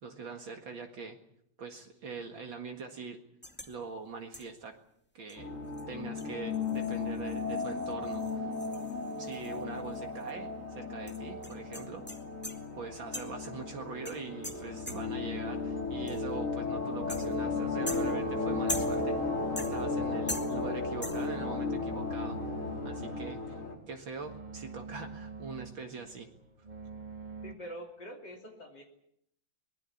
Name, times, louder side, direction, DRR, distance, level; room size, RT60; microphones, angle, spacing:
voice 1, 0.0-1.2 1.6-3.2 3.7-4.8 5.1-5.6 5.9-8.5 9.0-12.0 12.8-19.2 19.6-23.6 23.9-26.3, right 4 dB, 60° right, 3 dB, 2.6 m, -43 dB
sound 1, 3.4-3.8 4.3-4.6 5.3-5.4 5.7-5.8 6.2-10.0 10.2-10.3 11.1-12.7 13.1-13.5 14.1-15.3 16.1-16.4 17.1-17.5 17.9-19.2 19.6-20.0 20.3-20.8 21.0-21.4, left 1 dB, 5° left, 2.1 m, -42 dB
sound 2, 5.4-23.8, left 3 dB, 35° left, 4.3 m, -35 dB
sound 3, 17.4-27.5, right 4 dB, 20° right, 2.0 m, -47 dB
voice 2, 27.4-28.8, equal, 50° left, 1 dB, 3.5 m, -45 dB
23.5 x 21.0 x 8.5 m, 0.75 s
omnidirectional pair, 2.4 m